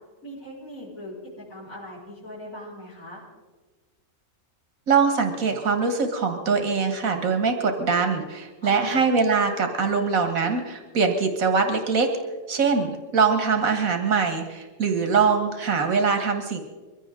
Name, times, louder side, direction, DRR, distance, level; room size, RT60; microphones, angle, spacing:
voice 1, 0.2-1.1 1.5-3.2 8.6-9.0, equal, 80° left, -8 dB, 5.1 m, -40 dB
voice 2, 4.9-12.1 12.5-16.6, right 5 dB, 85° right, 6 dB, 2.0 m, -23 dB
23.0 x 15.5 x 3.7 m, 1.3 s
omnidirectional pair, 1.4 m